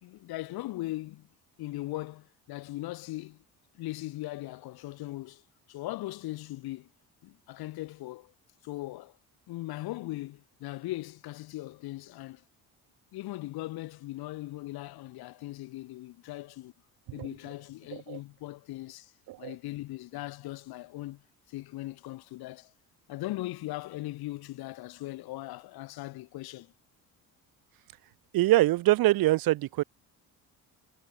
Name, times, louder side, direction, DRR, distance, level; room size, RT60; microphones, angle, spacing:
voice 1, 0.0-1.3 1.6-3.4 3.7-5.4 5.7-6.9 7.2-8.3 8.6-9.1 9.5-12.4 13.1-16.7 17.1-19.1 19.4-21.2 21.5-22.7 23.1-26.7, left 17 dB, 85° left, 4.2 m, -39 dB
voice 2, 28.3-29.8, right 17 dB, 70° right, 0.9 m, -24 dB
cardioid pair, 105°, 36 cm